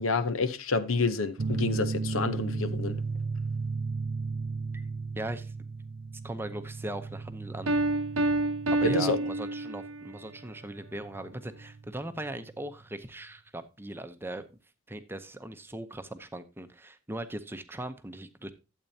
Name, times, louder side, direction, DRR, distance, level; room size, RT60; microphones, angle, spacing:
voice 1, 0.0-3.0 8.8-9.2, left 3 dB, 80° left, 0.8 m, -28 dB
sound 1, 1.4-12.6, right 4 dB, 50° right, 0.5 m, -35 dB
voice 2, 5.2-5.5 6.2-7.8 8.7-14.4 14.9-18.5, right 1 dB, 10° right, 0.7 m, -39 dB
Piano, 7.7-10.1, right 2 dB, 75° right, 0.9 m, -28 dB
12.0 x 8.2 x 2.8 m
head